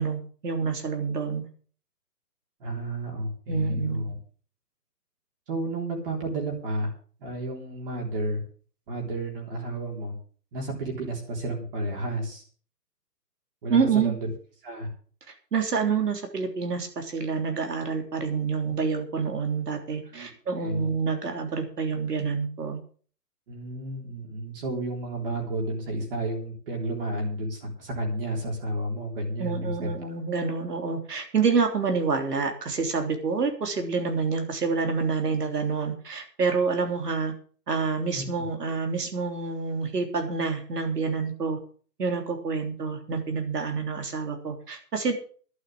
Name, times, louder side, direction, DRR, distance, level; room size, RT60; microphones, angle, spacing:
voice 1, 0.0-1.5 3.5-4.0 13.7-14.1 15.5-22.8 29.4-37.3 37.7-41.6 42.0-45.1, right 5 dB, 75° right, 4 dB, 3.5 m, -27 dB
voice 2, 2.6-4.1 5.5-6.9 7.2-8.4 8.9-10.1 10.5-12.4 13.6-14.3 14.6-14.9 20.1-20.3 20.6-20.9 23.5-29.9 38.1-38.3, right 1 dB, 35° right, -1 dB, 3.6 m, -31 dB
11.5 x 9.7 x 7.4 m, 0.43 s
hypercardioid pair, 160°, 48 cm